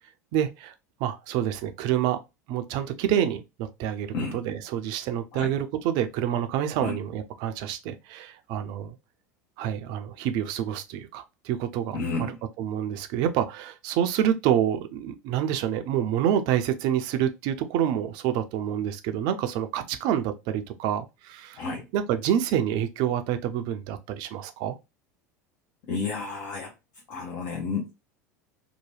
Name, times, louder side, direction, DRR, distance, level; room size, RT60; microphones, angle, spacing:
voice 1, 0.3-0.7 1.0-2.2 2.5-9.0 9.6-21.7 21.9-24.8, right 10 dB, 50° right, 0.5 m, -27 dB
voice 2, 11.9-12.3 21.6-21.8 25.9-26.7 27.1-28.1, left 4 dB, 50° left, 0.7 m, -31 dB
2.8 x 2.1 x 3.1 m
figure-of-eight pair, 75°, 9 cm